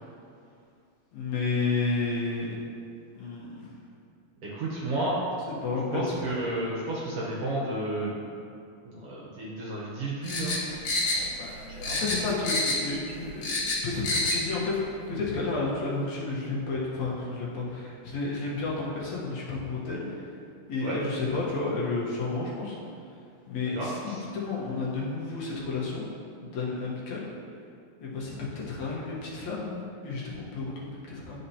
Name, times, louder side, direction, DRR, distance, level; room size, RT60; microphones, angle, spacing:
voice 1, 1.1-2.5 3.2-3.7 5.6-6.2 11.6-20.0 20.7-22.8 23.5-26.1 26.4-27.3 28.0-31.4, left 3 dB, 70° left, -5 dB, 2.3 m, -31 dB
voice 2, 4.4-5.2 5.9-8.2 8.8-10.6 20.8-21.0 23.7-24.2, right 1 dB, 65° right, -5 dB, 1.6 m, -32 dB
sound 1, 10.2-11.6 11.8-13.0 13.2-14.4 14.7-14.8, left 2 dB, 90° left, 2.8 m, -28 dB
11.5 x 4.3 x 2.8 m, 2.4 s
omnidirectional pair, 3.5 m